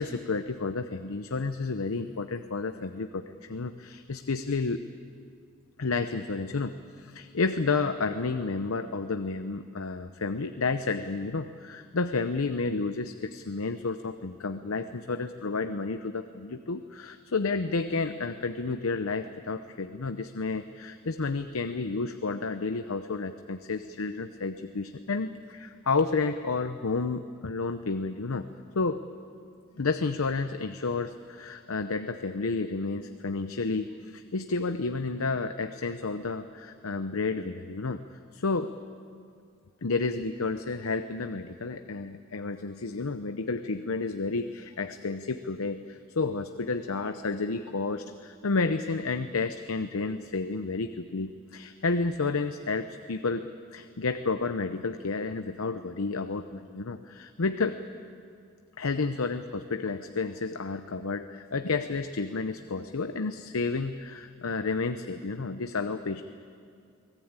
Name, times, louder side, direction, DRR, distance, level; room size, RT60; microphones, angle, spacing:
voice 1, 0.0-4.8 5.8-28.5 28.7-29.0 29.8-38.0 38.3-38.8 39.8-57.8 58.8-66.2, left 4 dB, 80° left, 9 dB, 0.8 m, -31 dB
24.5 x 18.0 x 8.9 m, 2.2 s
head